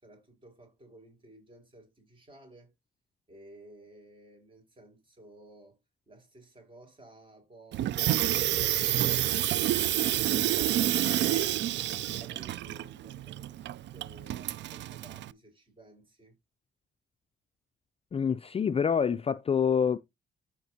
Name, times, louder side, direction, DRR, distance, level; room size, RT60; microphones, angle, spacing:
voice 1, 0.0-2.7 3.3-5.8 6.1-11.0 11.4-16.4, right 1 dB, 25° right, 5.0 m, -55 dB
Water tap faucet / Sink (filling or washing), 7.7-15.3, right 13 dB, 65° right, 0.4 m, -29 dB
voice 2, 18.1-20.0, left 7 dB, 30° left, 0.4 m, -26 dB
14.0 x 5.1 x 2.8 m
cardioid pair, 90°, 20 cm